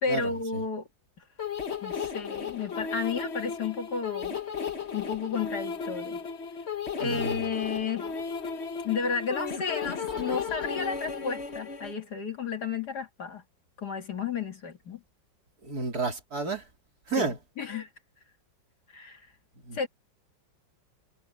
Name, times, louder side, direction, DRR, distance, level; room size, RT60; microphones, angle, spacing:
voice 1, 0.0-0.9 1.8-4.4 4.9-6.2 7.0-8.1 8.8-13.4 13.8-15.0 17.2-17.9 18.9-19.2 19.7-19.9, left 5 dB, 60° left, 2.5 m, -32 dB
sound 1, 1.4-11.9, left 6 dB, 40° left, 1.4 m, -35 dB
voice 2, 7.0-7.4 15.6-16.6 17.1-17.4 19.7-19.9, right 3 dB, 55° right, 4.4 m, -31 dB
omnidirectional pair, 2.0 m